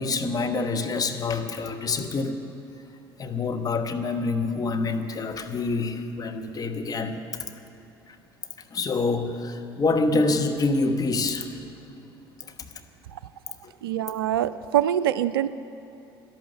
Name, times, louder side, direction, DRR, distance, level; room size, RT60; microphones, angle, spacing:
voice 1, 0.0-2.5 3.2-7.5 8.1-8.2 8.7-11.8, left 3 dB, 30° left, 6 dB, 1.1 m, -26 dB
voice 2, 13.8-15.5, right 11 dB, 75° right, 15 dB, 0.4 m, -24 dB
12.0 x 11.5 x 6.7 m, 3.0 s
figure-of-eight pair, 60°, 12 cm